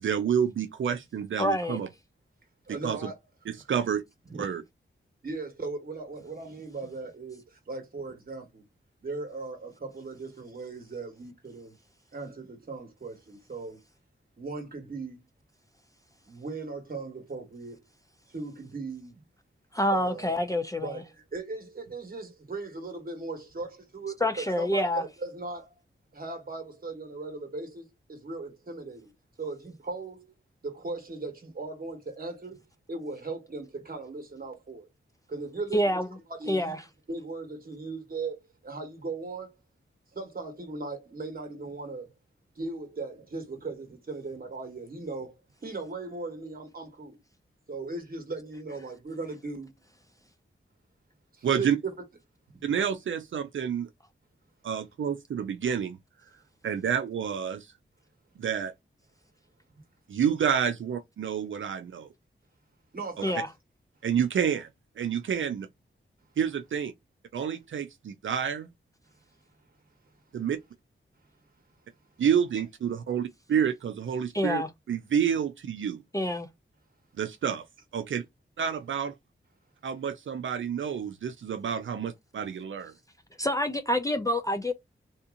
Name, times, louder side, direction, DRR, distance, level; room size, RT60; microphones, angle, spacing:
voice 1, 0.0-1.9 2.8-3.1 3.7-4.0 4.4-4.6 51.4-51.8 52.6-53.9 54.6-56.0 56.6-57.7 58.4-58.7 60.1-62.1 64.0-64.7 65.0-65.7 66.4-66.9 67.3-68.7 70.3-70.6 72.2-74.6 74.9-76.0 77.2-77.6 77.9-78.2 78.6-79.1 79.8-82.9, right 8 dB, 70° right, 0.4 m, -29 dB
voice 2, 1.4-1.8 19.7-21.0 24.2-25.0 35.7-36.1 36.5-36.8 63.2-63.5 74.3-74.7 76.1-76.5 83.4-84.7, left 1 dB, 15° left, 0.4 m, -27 dB
voice 3, 2.7-3.2 3.5-3.6 4.2-4.5 5.2-8.6 9.0-11.8 12.1-13.8 14.4-15.2 16.2-17.8 18.3-19.2 19.9-25.8 26.1-29.1 29.4-30.3 30.6-32.6 32.9-34.9 35.3-36.0 36.3-36.8 37.1-39.5 40.1-42.1 42.5-45.3 45.6-47.2 47.7-49.7 51.3-51.7 52.5-52.6 62.9-63.4, right 3 dB, 45° right, 1.4 m, -38 dB
3.5 x 2.8 x 2.5 m
wide cardioid pair, 140°, 21 cm